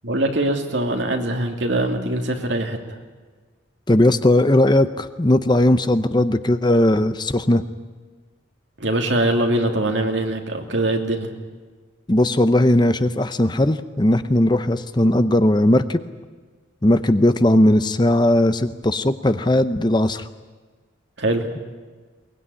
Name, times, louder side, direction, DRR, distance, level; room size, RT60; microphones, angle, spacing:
voice 1, 0.0-2.8 8.8-11.3 21.2-21.5, right 1 dB, 70° right, 3 dB, 2.8 m, -22 dB
voice 2, 3.9-7.6 12.1-16.0 16.8-20.2, left 1 dB, 20° left, 11 dB, 0.7 m, -18 dB
22.5 x 20.5 x 9.8 m, 1.4 s
head